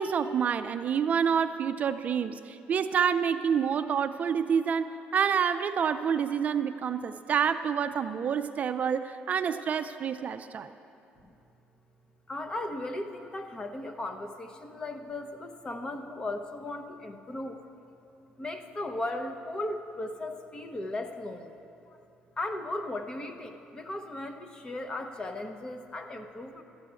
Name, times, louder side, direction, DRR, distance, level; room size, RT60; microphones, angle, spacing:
voice 1, 0.0-10.7, right 7 dB, 45° right, 10 dB, 0.4 m, -28 dB
voice 2, 12.3-17.6 18.4-21.6 21.9-22.0 22.4-26.6, left 2 dB, 25° left, 6 dB, 0.9 m, -37 dB
13.0 x 8.7 x 6.9 m, 2.8 s
cardioid pair, 115°, 4 cm